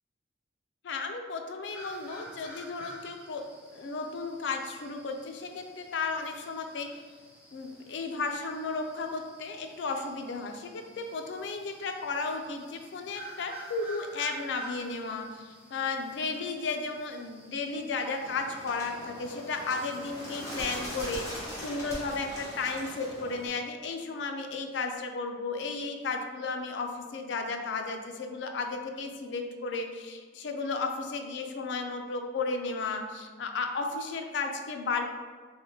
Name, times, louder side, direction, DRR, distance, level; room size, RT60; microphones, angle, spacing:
voice 1, 0.8-3.5 3.7-7.0 7.5-35.0, left 4 dB, 70° left, 4 dB, 0.4 m, -34 dB
sound 1, 1.7-21.5, right 1 dB, 5° right, 0.7 m, -51 dB
Bird, 18.2-23.5, equal, 15° left, 1.1 m, -41 dB
3.4 x 3.3 x 2.7 m, 1.5 s
head